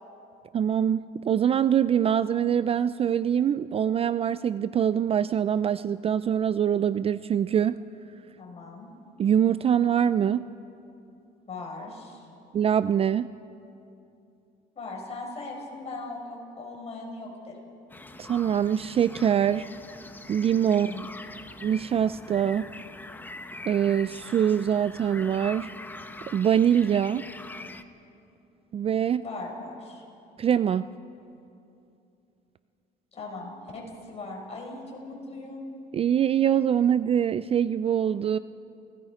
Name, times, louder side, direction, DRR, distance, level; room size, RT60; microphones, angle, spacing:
voice 1, 0.5-7.8 9.2-10.5 12.5-13.3 18.2-19.7 20.3-20.9 21.6-22.7 23.7-25.7 26.3-27.3 28.7-29.2 30.4-30.9 35.9-38.4, right 9 dB, 35° right, 15 dB, 0.4 m, -24 dB
voice 2, 8.4-8.9 11.5-12.3 14.8-17.6 20.7-21.0 29.2-30.0 33.1-35.7, left 2 dB, 40° left, -1 dB, 5.3 m, -39 dB
sound 1, 17.9-27.8, left 2 dB, 10° left, 0.9 m, -43 dB
30.0 x 18.0 x 5.0 m, 2.7 s
cardioid pair, 110°, 17 cm